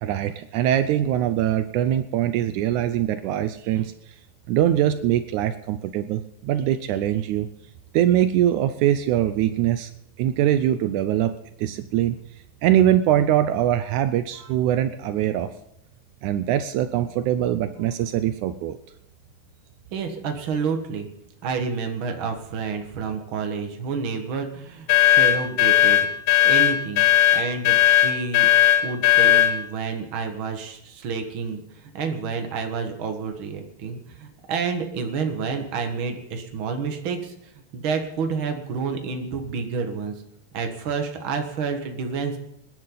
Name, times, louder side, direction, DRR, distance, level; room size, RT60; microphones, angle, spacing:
voice 1, 0.0-3.9 4.5-7.5 7.9-9.9 10.2-11.3 11.6-12.2 12.6-15.5 16.2-18.8, right 11 dB, 85° right, 11 dB, 1.7 m, -22 dB
voice 2, 19.9-21.1 21.4-26.1 26.4-27.1 27.3-28.5 28.8-37.3 37.7-40.1 40.5-42.4, right 5 dB, 50° right, 5 dB, 1.7 m, -29 dB
sound 1, 24.9-29.6, left 13 dB, 80° left, 2.9 m, -17 dB
27.0 x 10.5 x 3.9 m, 0.78 s
omnidirectional pair, 4.2 m